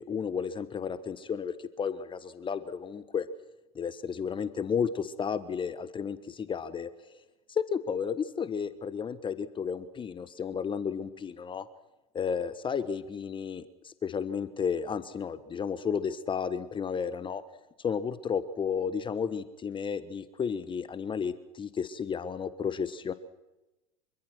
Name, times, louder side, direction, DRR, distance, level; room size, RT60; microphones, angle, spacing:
voice 1, 0.0-3.3 3.7-6.9 7.5-11.7 12.1-17.4 17.8-23.1, left 6 dB, 25° left, 13 dB, 1.4 m, -32 dB
26.5 x 24.0 x 6.2 m, 0.99 s
hypercardioid pair, 85°, 18 cm